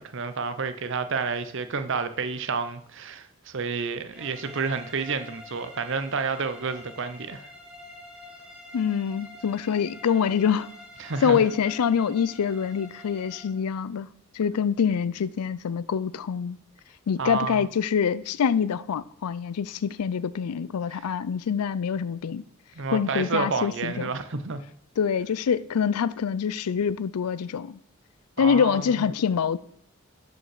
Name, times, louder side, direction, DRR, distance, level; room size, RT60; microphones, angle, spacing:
voice 1, 0.0-7.5 11.0-11.4 17.2-17.7 20.9-21.1 22.8-24.6 28.4-29.1, right 4 dB, 55° right, 0.7 m, -30 dB
sound 1, 4.1-13.6, left 2 dB, 5° right, 2.2 m, -46 dB
voice 2, 8.7-10.7 11.2-14.1 14.3-16.6 17.1-22.4 22.9-24.1 25.0-27.8 28.4-29.6, left 7 dB, 85° left, 0.4 m, -25 dB
12.0 x 5.3 x 4.8 m
head